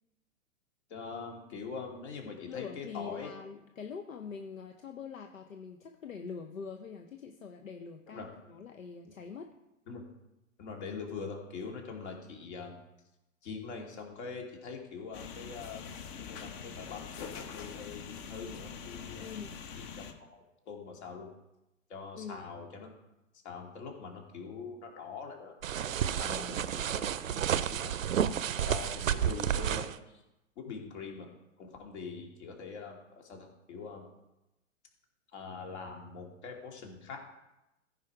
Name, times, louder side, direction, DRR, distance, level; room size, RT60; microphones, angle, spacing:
voice 1, 0.9-3.3 8.1-8.3 9.9-10.0 10.6-12.8 13.4-15.8 16.2-19.3 19.7-21.3 21.9-22.9 23.4-25.5 26.1-27.1 27.5-28.0 28.6-30.2 30.6-31.3 31.6-34.1 35.3-37.2, left 5 dB, 55° left, 1 dB, 2.7 m, -43 dB
voice 2, 2.5-9.5 19.2-19.6 22.2-22.5 26.2-26.7 27.2-27.5, left 6 dB, 80° left, 5 dB, 0.9 m, -44 dB
sound 1, 15.1-20.1, left 6 dB, 40° left, 1.1 m, -44 dB
sound 2, 25.6-30.0, right 9 dB, 80° right, 0.6 m, -31 dB
14.5 x 5.1 x 4.9 m, 0.93 s
figure-of-eight pair, 105°, 39 cm